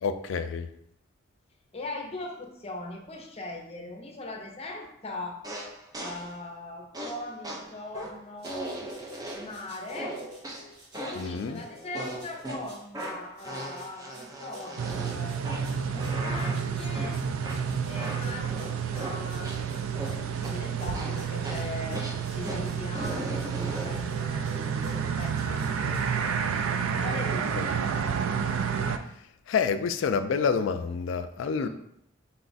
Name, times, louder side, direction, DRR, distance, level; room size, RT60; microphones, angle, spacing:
voice 1, 0.0-0.7 11.1-11.6 27.6-27.7 29.5-31.7, left 6 dB, 70° left, 10 dB, 0.3 m, -28 dB
voice 2, 1.7-5.4 6.0-8.7 9.3-10.2 10.9-15.4 15.8-17.2 17.9-22.0 22.3-26.5 27.0-27.7 31.6-31.7, left 2 dB, 30° left, 1 dB, 0.6 m, -40 dB
sound 1, 5.4-6.3 6.9-9.6 9.9-11.4 11.9-19.7 19.9-20.6 20.9-24.1, right 1 dB, 20° right, 0.5 m, -39 dB
sound 2, 8.4-26.1, equal, 55° right, 1.2 m, -49 dB
sound 3, 14.8-29.0, right 6 dB, 90° right, 0.3 m, -30 dB
4.2 x 2.3 x 3.9 m, 0.73 s
head